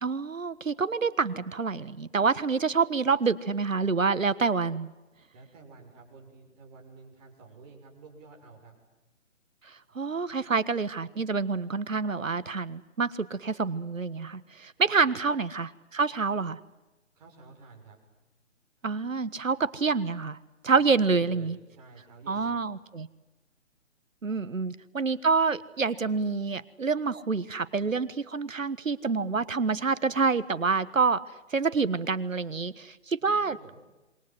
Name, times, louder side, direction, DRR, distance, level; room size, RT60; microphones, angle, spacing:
voice 1, 0.0-4.9 9.9-16.6 18.8-20.4 20.6-21.5 22.3-23.1 24.2-31.2 31.5-33.6, right 4 dB, 90° right, 16 dB, 1.5 m, -27 dB
voice 2, 5.3-8.8 14.8-15.1 17.1-18.0 20.8-22.6 24.3-24.4 33.2-33.8, right 4 dB, 30° right, 0 dB, 6.5 m, -50 dB
27.0 x 23.5 x 7.8 m, 1.1 s
figure-of-eight pair, 150°, 38 cm